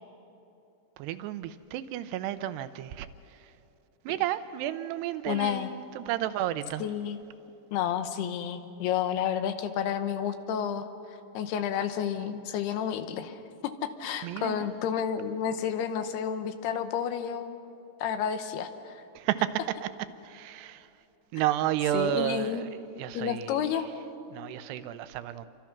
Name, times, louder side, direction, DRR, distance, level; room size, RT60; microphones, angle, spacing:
voice 1, 1.0-3.5 4.0-6.8 14.2-14.7 19.2-19.9 20.2-20.9 21.3-22.7 23.0-23.8 24.3-25.5, right 12 dB, 85° right, 13 dB, 2.8 m, -32 dB
voice 2, 5.3-5.7 6.8-7.2 7.7-10.9 11.3-17.6 18.0-19.0 21.9-22.6 23.1-23.9, left 9 dB, 80° left, 9 dB, 2.9 m, -31 dB
28.0 x 24.5 x 5.9 m, 2.8 s
omnidirectional pair, 4.7 m